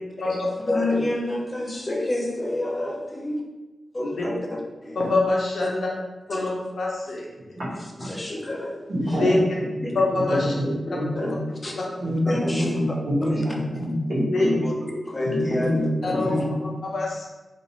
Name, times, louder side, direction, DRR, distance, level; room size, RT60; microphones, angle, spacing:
voice 1, 0.7-3.3 3.9-5.1 5.6-5.7 6.3-6.5 7.7-8.8 9.8-9.9 10.3-10.4 10.9-11.3 11.6-11.9 12.3-12.8 13.2-13.4 14.6-14.7 15.0-16.4, left 1 dB, 30° left, 0 dB, 0.5 m, -29 dB
voice 2, 5.0-5.9 6.3-7.3 9.1-9.4 9.9-10.5 14.3-14.5 16.0-16.3 16.8-17.2, left 2 dB, 80° left, -3 dB, 0.7 m, -24 dB
voice 3, 8.9-11.4 12.0-14.6 15.2-16.7, equal, 75° right, -8 dB, 1.2 m, -26 dB
2.5 x 2.5 x 3.1 m, 1.1 s
cardioid pair, 75°, 0 cm